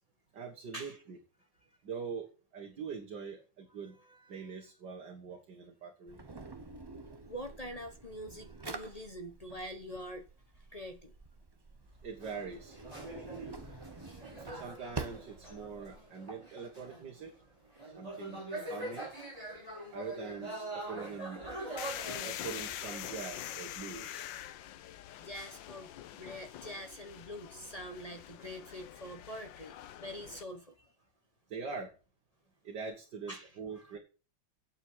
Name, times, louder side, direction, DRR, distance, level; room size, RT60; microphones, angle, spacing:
voice 1, 0.3-1.2 1.8-4.0 4.3-6.2 12.0-12.8 14.5-17.3 17.8-19.1 19.9-21.4 22.2-24.4 31.5-31.9 32.6-34.0, right 5 dB, 70° right, 2.4 m, -43 dB
Drawer open or close, 6.1-16.0, right 3 dB, 40° right, 0.3 m, -47 dB
voice 2, 7.3-10.2 10.7-11.1 13.3-13.5 25.2-30.9 33.3-33.5 33.8-34.0, equal, 25° left, 0.8 m, -45 dB
sound 1, 12.2-17.2 17.7-23.7, right 1 dB, 20° right, 6.1 m, -44 dB
sound 2, 21.8-30.4, left 12 dB, 90° left, 1.4 m, -44 dB
9.3 x 7.6 x 7.4 m
omnidirectional pair, 2.0 m